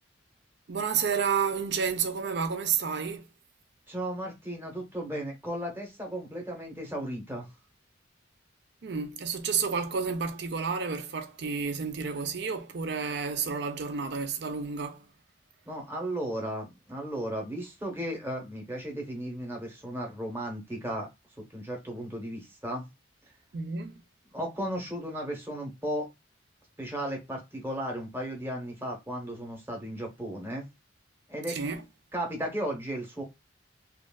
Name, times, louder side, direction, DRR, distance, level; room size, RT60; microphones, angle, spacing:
voice 1, 0.7-3.2 8.8-15.1 23.5-24.0 31.5-31.8, right 6 dB, 60° right, 0.5 m, -30 dB
voice 2, 3.9-7.5 15.7-21.1 21.4-22.9 24.3-26.1 26.8-30.6 31.3-31.6 32.1-33.2, right 1 dB, 10° right, 1.0 m, -35 dB
3.2 x 2.4 x 2.2 m
head